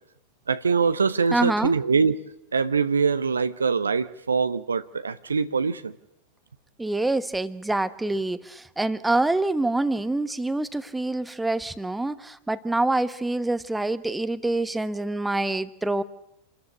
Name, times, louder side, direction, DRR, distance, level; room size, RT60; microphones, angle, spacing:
voice 1, 0.5-2.2 2.5-5.9, right 5 dB, 75° right, 0.8 m, -23 dB
voice 2, 1.3-1.7 6.8-16.0, right 2 dB, 5° right, 1.2 m, -26 dB
27.0 x 14.0 x 9.9 m
figure-of-eight pair, 90°, 0 cm